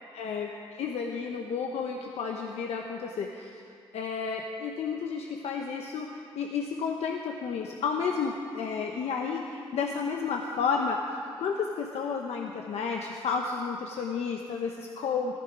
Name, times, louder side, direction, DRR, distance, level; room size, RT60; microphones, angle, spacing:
voice 1, 0.1-0.5 0.8-3.5 3.9-11.0 11.4-15.4, left 5 dB, 80° left, 2 dB, 1.0 m, -31 dB
17.5 x 14.5 x 5.1 m, 2.5 s
supercardioid pair, 55°, 11 cm